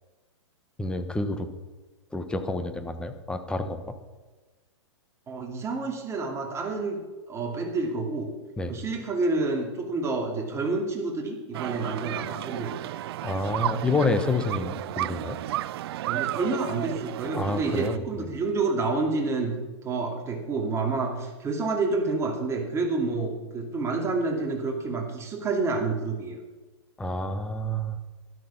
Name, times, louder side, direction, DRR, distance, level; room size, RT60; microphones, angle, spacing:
voice 1, 0.8-1.5 2.1-3.9 8.6-8.7 13.2-15.4 17.3-18.2 27.0-28.0, left 2 dB, 5° left, 8 dB, 1.1 m, -29 dB
voice 2, 5.3-7.0 7.3-8.3 8.7-12.9 16.0-19.5 19.8-26.4, right 3 dB, 20° right, 1 dB, 2.6 m, -28 dB
sound 1, 11.5-18.0, right 14 dB, 55° right, 0.4 m, -33 dB
13.0 x 12.5 x 5.8 m, 1.2 s
hypercardioid pair, 135°, 15 cm